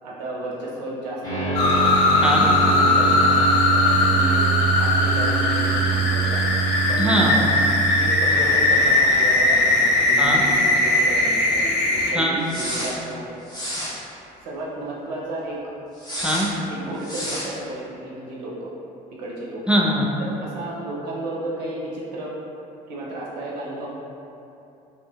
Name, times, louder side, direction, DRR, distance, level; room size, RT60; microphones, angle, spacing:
voice 1, 0.0-7.5 7.9-13.3 13.8-13.9 14.4-15.6 16.6-18.7 19.2-19.6 20.2-22.3 22.9-23.9, right 1 dB, 85° right, -4 dB, 0.4 m, -33 dB
sound 1, 1.2-10.4 10.7-10.8 12.4-12.9 13.5-13.9 16.0-16.5 17.0-17.5, right 5 dB, 20° left, 1.2 m, -26 dB
sound 2, 1.5-12.1, left 2 dB, 55° left, 0.5 m, -19 dB
voice 2, 7.0-7.3 10.2-10.4 12.1-12.4 16.2-16.5 19.7-20.0, equal, 5° right, -3 dB, 0.4 m, -21 dB
2.7 x 2.5 x 2.2 m, 2.8 s
hypercardioid pair, 60°, 21 cm